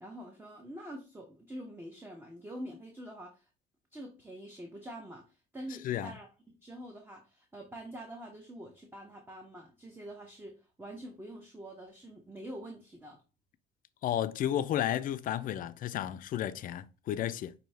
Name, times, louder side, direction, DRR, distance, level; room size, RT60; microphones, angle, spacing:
voice 1, 0.0-3.5 3.9-13.2, right 1 dB, 15° right, 0.8 m, -46 dB
voice 2, 14.0-17.5, left 11 dB, 55° left, 0.4 m, -32 dB
5.3 x 2.7 x 3.2 m
cardioid pair, 110°, 17 cm